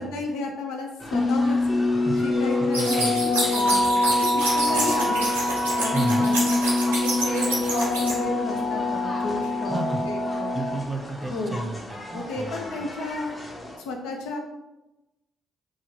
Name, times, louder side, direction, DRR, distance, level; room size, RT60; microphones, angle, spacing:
voice 1, 0.0-1.6 2.2-5.2 5.7-6.7 7.0-10.6 11.3-11.8 12.1-13.4 13.8-14.4, left 2 dB, 75° left, 2 dB, 0.4 m, -32 dB
sound 1, 1.0-13.8, left 1 dB, 25° left, 0.8 m, -39 dB
sound 2, 1.1-10.8, left 2 dB, 50° left, 1.2 m, -24 dB
voice 2, 2.6-3.5 4.6-4.8 5.9-6.3 9.7-10.1 10.5-12.7, right 2 dB, 30° right, 3 dB, 0.6 m, -32 dB
sound 3, 2.7-8.1, right 1 dB, 90° right, 0.6 m, -28 dB
2.8 x 2.3 x 3.2 m, 1.0 s
hypercardioid pair, 40°, 0 cm